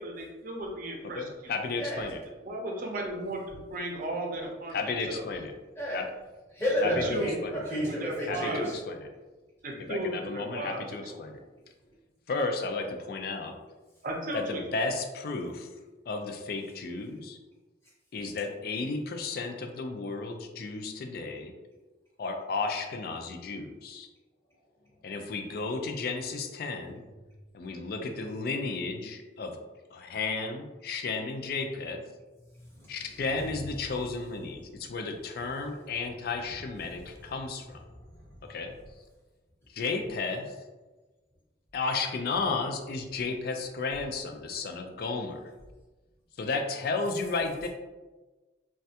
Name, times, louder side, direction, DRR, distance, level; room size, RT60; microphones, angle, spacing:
voice 1, 0.0-1.5 2.4-5.2 6.8-7.4 7.7-8.7 9.6-10.8 11.1-11.2 14.0-14.8, right 1 dB, 50° right, 0 dB, 0.6 m, -35 dB
voice 2, 1.0-2.2 4.7-5.5 5.9-6.1 6.8-7.6 8.3-9.1 9.8-11.4 12.3-13.5 14.3-15.7 16.1-17.4 18.1-21.5 22.2-24.1 25.0-27.0 27.5-29.6 29.9-32.0 32.9-37.8 38.5-38.8 39.7-40.6 41.7-45.4 46.4-47.7, left 3 dB, 55° left, 4 dB, 0.4 m, -33 dB
voice 3, 1.8-2.1 5.8-6.0 6.5-8.8 32.6-32.9 36.8-37.0 37.9-38.4, equal, 15° left, -6 dB, 0.7 m, -32 dB
3.2 x 2.2 x 2.7 m, 1.2 s
head